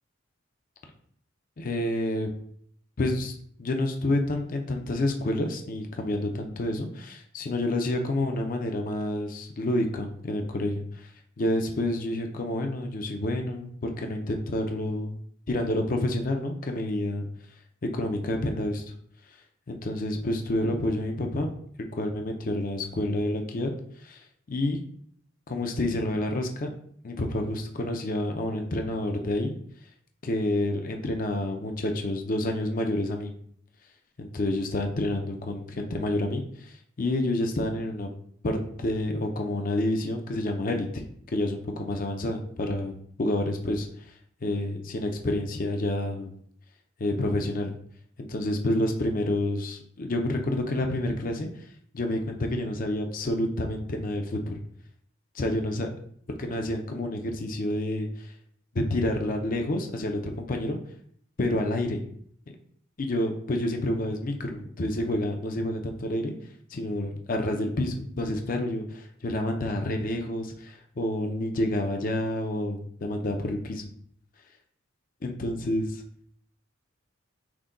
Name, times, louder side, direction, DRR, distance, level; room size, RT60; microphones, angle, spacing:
voice 1, 1.6-2.3 3.0-3.3 3.6-11.1 11.4-15.2 15.5-17.3 17.9-18.9 19.7-21.5 21.9-23.7 24.0-24.8 25.5-26.7 27.0-29.5 30.2-33.3 34.2-38.1 38.4-41.0 41.3-43.9 44.4-46.3 47.0-47.8 48.2-51.5 51.9-54.5 55.4-55.9 56.4-58.3 58.7-60.8 61.4-62.0 63.0-66.4 66.7-73.9 75.2-76.0, left 1 dB, 40° left, 4 dB, 0.5 m, -29 dB
6.0 x 2.2 x 3.8 m, 0.63 s
head